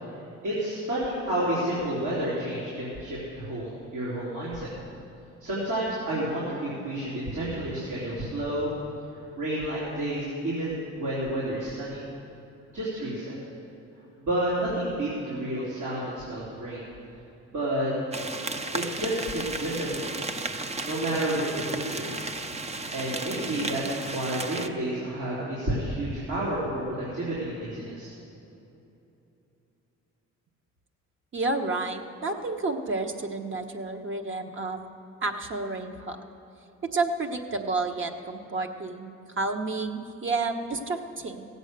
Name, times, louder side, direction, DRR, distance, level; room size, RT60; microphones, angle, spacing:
voice 1, 0.4-4.7 5.4-8.7 9.1-12.0 12.7-13.4 14.2-16.9 17.5-17.9 18.7-20.2 20.9-22.2 22.9-28.1, right 1 dB, 75° right, -8 dB, 3.5 m, -30 dB
sound 1, 18.1-24.7, right 2 dB, 20° right, 0.7 m, -34 dB
voice 2, 31.3-34.8 35.2-36.2 36.9-41.5, right 3 dB, 40° right, 4 dB, 1.1 m, -30 dB
16.0 x 8.1 x 6.6 m, 2.9 s
cardioid pair, 90°, 30 cm